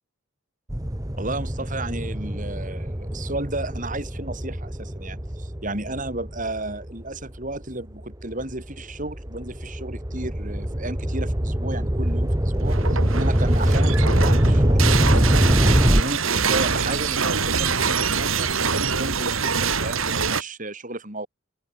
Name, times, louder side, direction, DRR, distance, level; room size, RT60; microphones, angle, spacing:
sound 1, 0.7-7.4 8.0-16.0, equal, 15° right, 1.5 m, -23 dB
voice 1, 1.2-15.6 15.9-21.3, right 2 dB, 40° right, 5.5 m, -33 dB
sound 2, 12.6-20.4, right 5 dB, 80° right, 3.5 m, -24 dB
open air
head